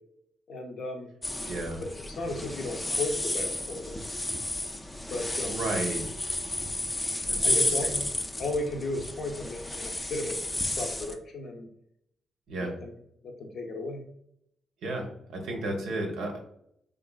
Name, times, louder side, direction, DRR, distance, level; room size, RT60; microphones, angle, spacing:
voice 1, 0.5-1.1 1.8-4.0 5.1-5.7 7.4-7.9 8.4-10.4 10.8-11.7 12.6-12.9 13.2-14.0, left 2 dB, 70° left, 3 dB, 0.5 m, -35 dB
sound 1, 1.2-11.1, left 1 dB, 20° left, 0.4 m, -32 dB
voice 2, 1.5-1.8 5.5-6.0 6.6-6.8 7.3-8.0 12.5-12.7 14.8-16.4, right 2 dB, 85° right, 2 dB, 0.6 m, -33 dB
2.9 x 2.4 x 2.2 m, 0.73 s
supercardioid pair, 60°, 0 cm